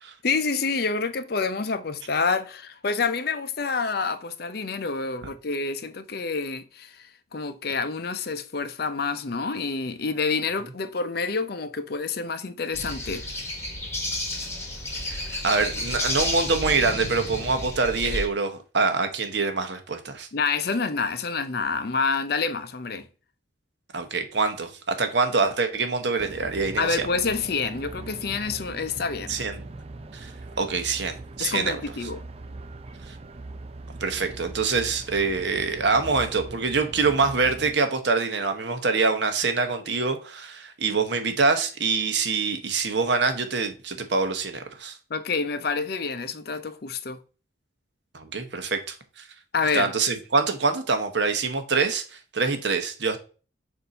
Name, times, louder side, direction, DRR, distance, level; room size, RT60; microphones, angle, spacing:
voice 1, 0.2-13.2 20.3-23.1 26.8-29.4 31.4-32.2 45.1-47.2 49.5-49.9, left 4 dB, 50° left, 0.5 m, -28 dB
sound 1, 12.7-18.3, left 1 dB, 15° left, 1.1 m, -31 dB
voice 2, 15.1-20.3 23.9-27.0 29.3-29.6 30.1-30.3 30.6-31.8 33.0-33.2 34.0-45.0 48.1-49.3 49.7-53.2, right 4 dB, 60° right, 0.9 m, -25 dB
sound 2, 26.2-37.7, right 2 dB, 30° right, 0.4 m, -41 dB
6.7 x 2.7 x 5.3 m
head